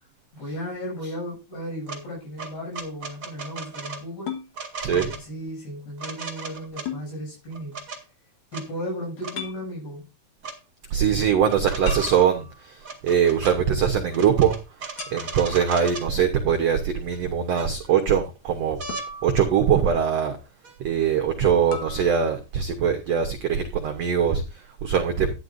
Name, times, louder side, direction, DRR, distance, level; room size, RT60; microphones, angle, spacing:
voice 1, 0.3-4.3 4.9-7.8 8.5-10.1, equal, 85° left, 9.2 m, -35 dB
sound 1, 1.9-2.0 2.4-4.0 4.5-5.2 6.0-6.9 7.5-8.0 8.5-8.6 9.2-9.4 10.4-10.6 11.5-12.3 12.8-13.6 14.1-16.1 17.1-17.2 17.6-18.1 18.8-19.1 20.6-20.8, right 4 dB, 55° right, 0.9 m, -37 dB
sound 2, 4.3-4.5 6.9-7.1 9.4-9.6 11.9-12.8 15.0-15.6 18.9-19.8 21.7-22.1, left 5 dB, 60° left, 2.5 m, -36 dB
voice 2, 4.8-5.1 10.9-14.6 15.1-18.8 19.2-20.4 20.8-25.3, right 8 dB, 85° right, 1.4 m, -22 dB
12.5 x 10.0 x 2.6 m
omnidirectional pair, 4.5 m